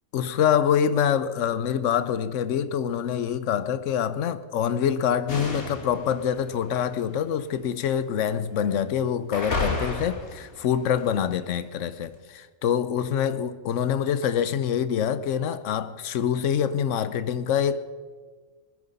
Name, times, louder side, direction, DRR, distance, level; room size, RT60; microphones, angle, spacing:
voice 1, 0.1-17.8, left 8 dB, 70° left, 1.0 m, -25 dB
sound 1, 5.3-7.7 8.3-8.8 9.3-11.2, left 3 dB, 85° left, 2.6 m, -33 dB
20.0 x 10.0 x 5.3 m
omnidirectional pair, 1.4 m